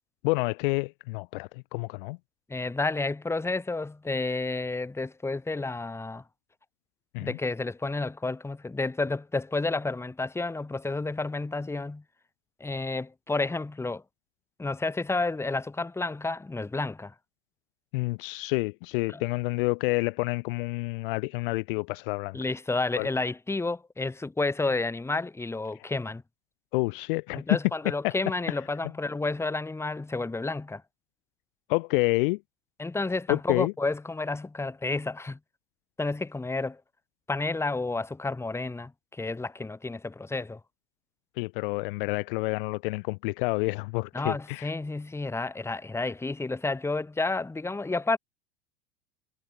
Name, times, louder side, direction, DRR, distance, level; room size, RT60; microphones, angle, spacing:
voice 1, 0.2-2.2 7.1-7.4 17.9-22.4 23.0-23.1 26.7-27.4 28.0-28.1 31.7-32.4 33.3-33.7 41.4-44.7, left 26 dB, 50° left, 0.7 m, -28 dB
voice 2, 2.5-6.2 7.2-12.0 12.6-14.0 14.6-17.1 19.1-19.2 22.3-26.2 27.3-30.8 32.8-35.4 36.0-36.8 37.3-40.6 44.1-48.2, left 3 dB, 10° left, 1.4 m, -30 dB
figure-of-eight pair, 85°, 33 cm